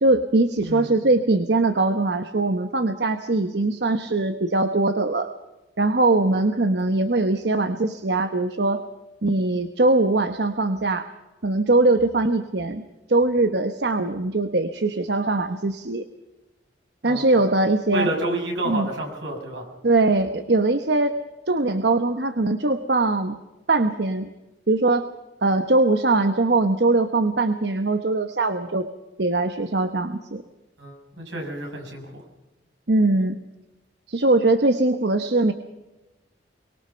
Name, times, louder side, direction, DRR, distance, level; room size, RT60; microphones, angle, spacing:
voice 1, 0.0-5.3 5.8-8.8 9.2-11.1 11.4-12.8 13.1-16.0 17.0-18.1 18.7-18.9 19.8-21.1 21.5-23.4 23.7-24.3 24.7-25.1 25.4-28.9 29.2-30.4 32.9-33.4 34.1-35.5, right 2 dB, 60° right, 8 dB, 1.0 m, -21 dB
voice 2, 17.9-19.7 30.8-32.2, right 1 dB, 80° right, 2 dB, 6.6 m, -29 dB
24.0 x 22.0 x 5.7 m, 1.1 s
head